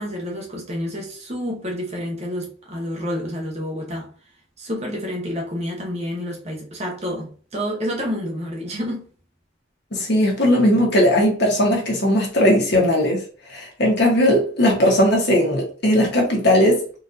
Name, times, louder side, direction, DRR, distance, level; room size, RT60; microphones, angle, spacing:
voice 1, 0.0-4.1 4.6-9.0, equal, 30° right, 0.9 m, -29 dB
voice 2, 9.9-13.2 13.5-16.8, equal, 55° left, 1.1 m, -18 dB
4.0 x 2.6 x 2.6 m
head